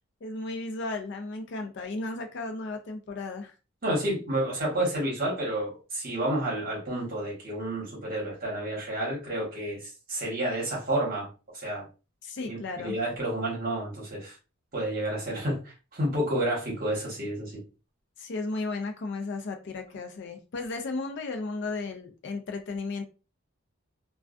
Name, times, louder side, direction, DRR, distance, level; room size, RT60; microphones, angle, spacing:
voice 1, 0.2-3.6 12.2-13.0 18.2-23.0, left 3 dB, 50° left, 0.4 m, -34 dB
voice 2, 3.8-11.3 11.5-11.9 12.4-12.6 12.8-14.4 14.7-17.6, right 1 dB, 40° right, 1.0 m, -30 dB
2.3 x 2.3 x 2.4 m
head